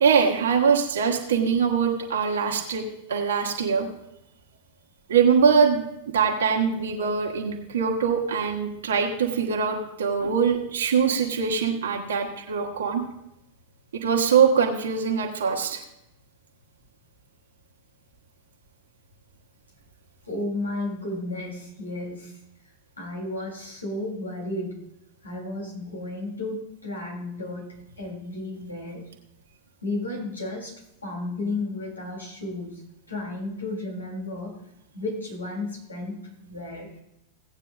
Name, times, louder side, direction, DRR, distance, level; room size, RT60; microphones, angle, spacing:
voice 1, 0.0-3.9 5.1-5.8 6.1-13.0 13.9-15.8, right 6 dB, 65° right, 0 dB, 1.4 m, -23 dB
voice 2, 20.3-22.3 23.0-24.8 25.2-27.7 28.0-29.0 29.8-30.7 31.0-32.8 33.1-34.5 34.9-36.9, left 2 dB, 80° left, -2 dB, 3.4 m, -33 dB
17.5 x 8.9 x 2.5 m, 0.84 s
figure-of-eight pair, 90°, 0 cm